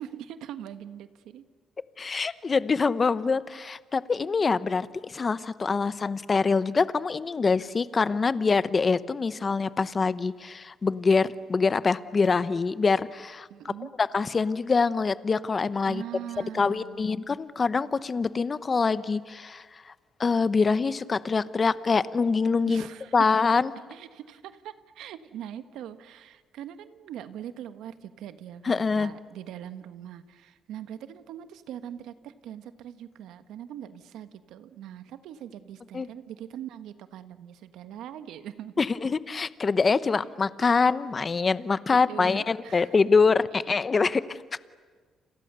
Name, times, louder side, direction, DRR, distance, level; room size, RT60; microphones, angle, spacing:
voice 1, 0.0-1.4 2.1-2.4 13.5-13.9 15.9-17.2 22.7-23.3 23.9-38.7 41.9-43.0 43.7-43.8, right 10 dB, 85° right, 10 dB, 1.4 m, -42 dB
voice 2, 2.0-13.5 14.0-16.0 16.5-19.6 20.2-22.9 23.1-23.7 28.7-29.1 35.9-36.1 38.8-44.6, left 4 dB, 30° left, 15 dB, 0.9 m, -25 dB
30.0 x 28.0 x 6.8 m, 1.5 s
cardioid pair, 110°, 0 cm